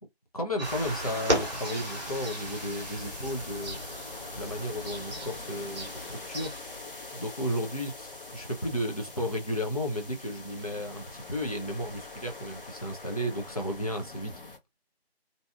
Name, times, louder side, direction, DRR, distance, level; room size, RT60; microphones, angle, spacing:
voice 1, 0.3-3.8 4.3-6.5 7.1-14.3, equal, 35° left, 0.5 m, -33 dB
sound 1, 0.6-14.6, left 2 dB, 55° left, 1.0 m, -43 dB
sound 2, 0.6-6.6, right 1 dB, 40° right, 0.8 m, -36 dB
2.6 x 2.2 x 2.4 m
figure-of-eight pair, 165°, 32 cm